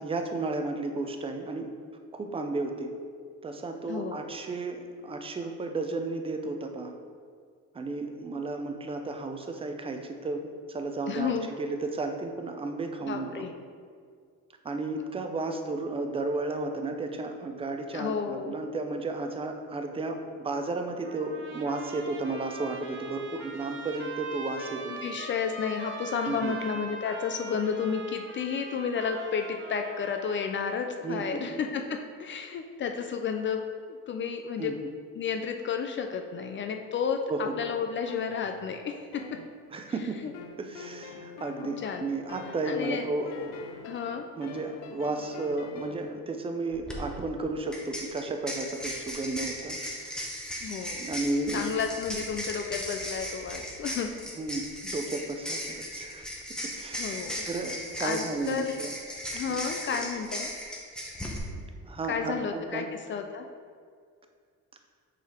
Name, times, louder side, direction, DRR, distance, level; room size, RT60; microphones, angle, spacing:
voice 1, 0.0-1.7 2.1-2.9 3.4-6.9 7.7-13.5 14.6-24.9 26.3-26.6 31.0-31.4 34.6-34.7 37.3-37.6 39.7-40.2 40.6-43.6 44.4-50.3 50.9-51.7 54.4-56.2 56.7-58.9 59.5-59.6 59.9-60.1 61.8-62.9, right 2 dB, 20° right, 5 dB, 0.5 m, -33 dB
voice 2, 3.9-4.2 11.1-11.5 13.1-13.5 17.9-18.5 24.9-34.7 35.1-39.2 41.6-42.0 42.7-43.1 43.8-44.3 50.6-51.0 51.5-54.1 57.0-57.4 58.0-58.8 59.1-60.5 62.1-62.8 63.1-63.5, left 6 dB, 40° left, 5 dB, 0.4 m, -32 dB
Trumpet, 21.0-30.7, right 3 dB, 40° right, 0.9 m, -41 dB
sound 1, 38.1-39.9 40.3-46.1, left 6 dB, 85° left, 0.6 m, -45 dB
sound 2, 46.7-47.0 47.7-61.4, equal, ahead, 0.9 m, -37 dB
5.7 x 4.0 x 4.3 m, 2.1 s
cardioid pair, 125°, 32 cm